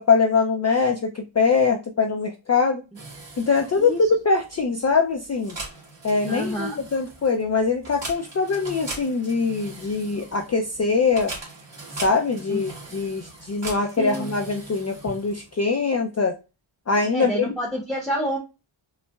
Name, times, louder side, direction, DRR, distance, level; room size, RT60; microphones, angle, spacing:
voice 1, 0.0-2.8 3.4-5.6 6.0-11.3 12.0-16.4 16.9-17.5, left 4 dB, 35° left, 3 dB, 0.4 m, -22 dB
sound 1, 2.9-15.7, right 3 dB, 55° right, 1.9 m, -40 dB
voice 2, 6.3-6.8 12.5-12.6 14.0-14.3 17.1-18.4, right 1 dB, ahead, -1 dB, 0.7 m, -28 dB
5.3 x 2.1 x 2.2 m, 0.29 s
wide cardioid pair, 75°, 49 cm